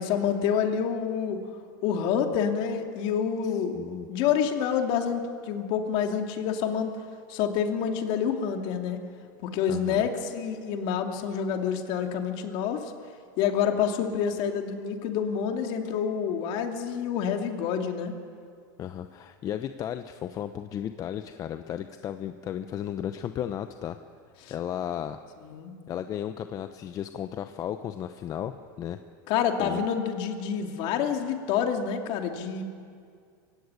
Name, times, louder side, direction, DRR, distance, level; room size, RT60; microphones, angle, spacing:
voice 1, 0.0-1.4 1.8-3.7 4.1-6.9 7.3-9.0 9.4-12.9 13.4-18.1 24.4-24.5 25.5-25.7 29.3-32.6, left 7 dB, 50° left, 4 dB, 2.7 m, -27 dB
voice 2, 3.4-4.1 9.7-10.1 18.8-24.0 24.5-25.2 25.9-29.0 29.6-29.9, left 10 dB, 30° left, 9 dB, 0.8 m, -34 dB
23.0 x 16.5 x 9.7 m, 2.2 s
supercardioid pair, 135°, 11 cm